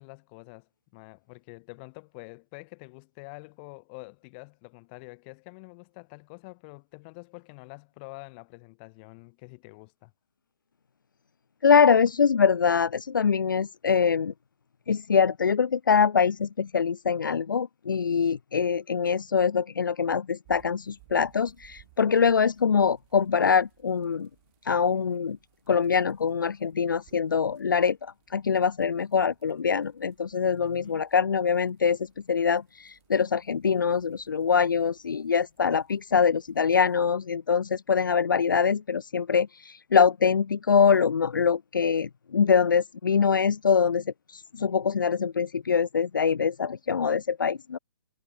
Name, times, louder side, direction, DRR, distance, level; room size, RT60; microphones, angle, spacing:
voice 1, 0.0-10.1 30.5-31.0, left 31 dB, 30° left, 3.2 m, -47 dB
voice 2, 11.6-14.3 14.9-24.3 24.7-25.4 25.7-32.0 32.3-47.8, left 6 dB, 70° left, 0.4 m, -24 dB
sound 1, 20.5-37.0, right 40 dB or more, 25° right, 6.0 m, -63 dB
figure-of-eight pair, 130°, 11 cm